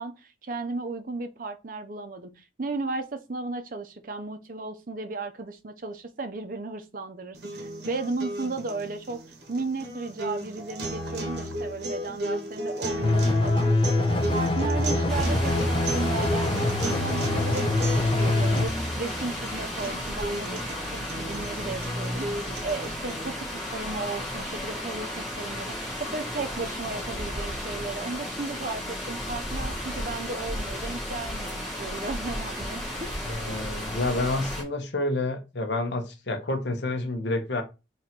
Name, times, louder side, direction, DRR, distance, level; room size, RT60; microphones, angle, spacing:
voice 1, 0.0-9.2 9.5-13.8 14.1-33.2, right 3 dB, 45° right, 0.6 m, -35 dB
sound 1, 7.3-23.4, right 1 dB, 65° right, 1.0 m, -34 dB
sound 2, 13.0-18.7, left 2 dB, 25° left, 0.6 m, -24 dB
sound 3, 15.1-34.6, left 1 dB, ahead, 1.6 m, -34 dB
voice 2, 33.2-37.6, left 2 dB, 70° left, 0.9 m, -29 dB
3.8 x 2.9 x 4.3 m
head